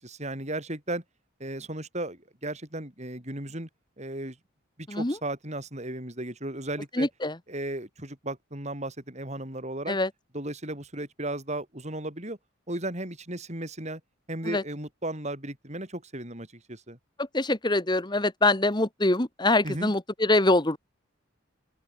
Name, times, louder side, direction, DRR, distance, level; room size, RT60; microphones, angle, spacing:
voice 1, 0.0-1.0 1.4-3.7 4.0-4.4 4.8-7.1 7.5-10.0 10.3-12.4 12.7-14.0 14.3-17.0 19.6-19.9, right 1 dB, 35° right, 5.8 m, -35 dB
voice 2, 6.9-7.3 9.9-10.1 14.5-14.6 17.2-20.8, left 2 dB, 20° left, 1.6 m, -24 dB
open air
head